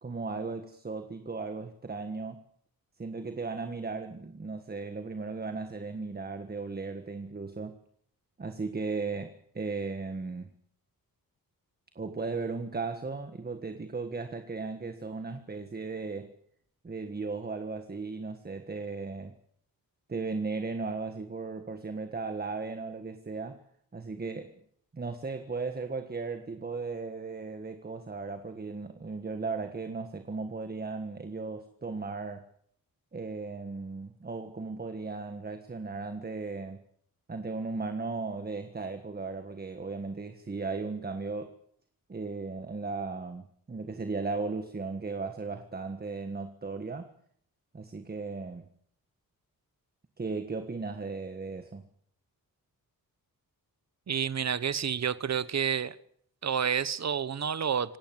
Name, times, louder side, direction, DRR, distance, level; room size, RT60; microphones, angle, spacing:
voice 1, 0.0-2.4 3.0-7.8 8.4-10.5 11.9-16.4 16.8-19.3 20.1-23.6 23.9-24.5 24.9-32.5 33.1-36.8 37.3-41.5 42.1-47.1 47.7-48.7 50.2-51.8, right 4 dB, 25° right, 1.6 m, -36 dB
voice 2, 54.1-56.0 56.4-58.0, right 7 dB, 50° right, 1.1 m, -29 dB
26.5 x 18.5 x 7.7 m
wide cardioid pair, 145°, 35 cm